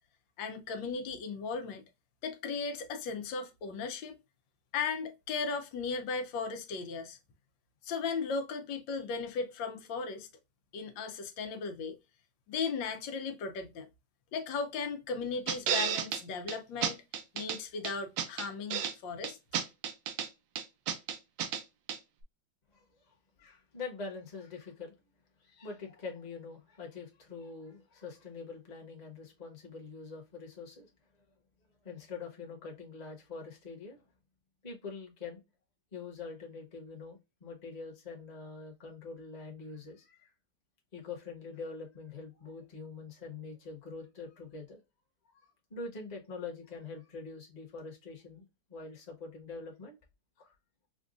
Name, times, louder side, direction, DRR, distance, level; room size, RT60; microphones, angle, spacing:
voice 1, 0.4-1.8 2.2-4.1 4.7-7.2 7.8-10.3 10.7-12.0 12.5-13.9 14.3-17.0 17.3-19.4, left 5 dB, 90° left, 1.4 m, -36 dB
sound 1, 15.5-16.2 16.5-16.6 16.8-17.6 17.8-18.9 19.2-20.3 20.6-21.6 21.9-22.0, right 8 dB, 85° right, 1.4 m, -32 dB
voice 2, 22.7-24.9 25.4-30.9 31.8-34.0 34.6-35.4 35.9-40.3 40.9-44.8 45.7-48.4 48.7-50.0 50.4-50.5, left 4 dB, 25° left, 1.0 m, -44 dB
5.2 x 2.3 x 2.4 m
omnidirectional pair, 2.0 m